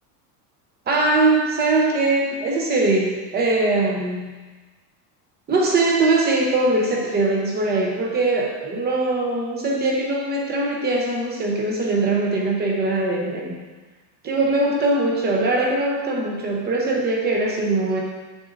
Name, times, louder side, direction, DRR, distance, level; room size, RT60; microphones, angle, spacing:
voice 1, 0.9-4.3 5.5-13.6 14.2-18.0, right 2 dB, 20° right, 0 dB, 0.8 m, -21 dB
7.2 x 6.3 x 2.6 m, 1.3 s
cardioid pair, 165°, 49 cm